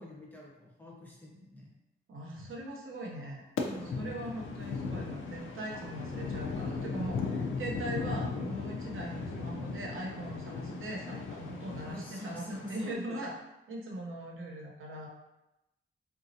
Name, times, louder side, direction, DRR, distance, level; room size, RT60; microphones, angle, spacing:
voice 1, 0.0-1.7 3.7-4.2 11.9-13.2, left 1 dB, 10° left, -3 dB, 0.6 m, -46 dB
voice 2, 2.1-3.5 4.0-13.3 13.7-15.1, right 1 dB, 85° right, -1 dB, 0.8 m, -40 dB
sound 1, 3.6-12.9, left 4 dB, 80° left, 0.5 m, -37 dB
4.0 x 2.4 x 2.7 m, 0.95 s
wide cardioid pair, 160°, 20 cm